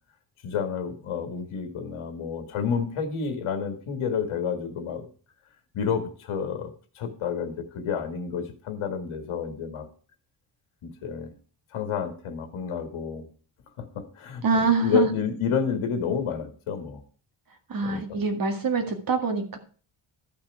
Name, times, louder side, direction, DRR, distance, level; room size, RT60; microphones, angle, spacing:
voice 1, 0.4-5.1 5.7-6.7 7.0-9.9 10.8-11.3 11.7-13.3 13.8-17.0 17.8-18.2, left 6 dB, 85° left, 7 dB, 1.9 m, -30 dB
voice 2, 14.4-15.1 17.7-19.6, right 4 dB, 45° right, 6 dB, 1.9 m, -25 dB
13.0 x 5.9 x 4.7 m, 0.41 s
wide cardioid pair, 150°, 48 cm